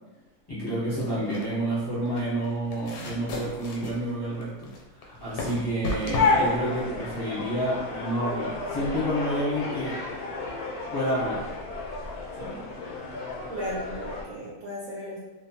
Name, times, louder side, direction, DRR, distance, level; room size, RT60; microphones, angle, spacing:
voice 1, 0.5-9.9 10.9-11.5 12.4-12.6, right 1 dB, 25° left, -11 dB, 0.6 m, -29 dB
sound 1, 0.9-7.9, left 1 dB, 90° left, 1.2 m, -36 dB
voice 2, 1.0-1.3 13.5-15.2, equal, 70° right, -5 dB, 0.9 m, -35 dB
sound 2, 6.2-14.2, left 3 dB, 75° left, 0.5 m, -31 dB
2.7 x 2.1 x 2.7 m, 1.2 s
omnidirectional pair, 1.7 m